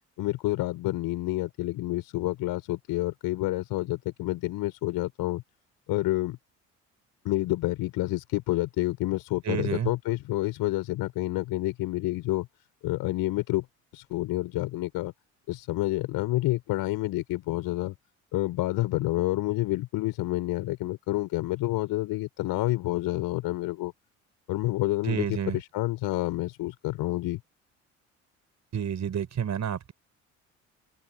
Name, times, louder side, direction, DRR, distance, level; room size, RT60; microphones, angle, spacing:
voice 1, 0.2-5.4 5.9-6.4 7.2-12.5 12.8-13.7 13.9-15.1 15.5-17.9 18.3-23.9 24.5-27.4, left 18 dB, 60° left, 5.7 m, -29 dB
voice 2, 9.4-9.9 25.0-25.6 28.7-29.9, right 8 dB, 45° right, 6.7 m, -29 dB
open air
figure-of-eight pair, 55°, 39 cm